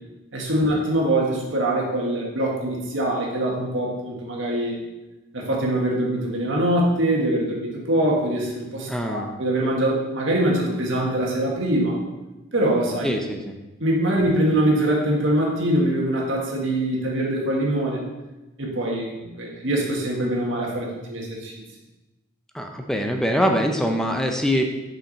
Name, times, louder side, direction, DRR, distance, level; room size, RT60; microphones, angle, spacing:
voice 1, 0.3-4.8 5.3-12.0 12.5-13.1 13.8-18.0 18.6-21.5, right 1 dB, 80° right, -2 dB, 1.6 m, -23 dB
voice 2, 8.9-9.3 13.0-13.6 22.5-24.6, equal, 5° left, 3 dB, 0.5 m, -23 dB
5.8 x 5.8 x 4.1 m, 1.1 s
head